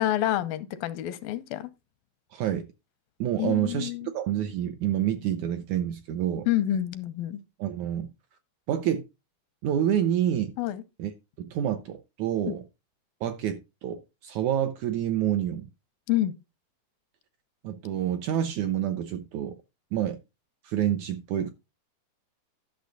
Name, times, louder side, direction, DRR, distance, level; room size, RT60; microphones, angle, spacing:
voice 1, 0.0-1.7 3.4-4.1 6.5-7.4 10.6-10.8 12.5-12.6 16.1-16.3, left 13 dB, 90° left, 2.6 m, -28 dB
voice 2, 2.3-2.7 3.2-6.5 7.6-8.1 8.7-9.0 9.6-10.5 11.0-11.1 11.4-12.6 13.2-15.7 17.6-19.6 19.9-20.2 20.6-21.5, right 10 dB, 80° right, 1.8 m, -28 dB
11.5 x 6.7 x 3.8 m
omnidirectional pair, 4.1 m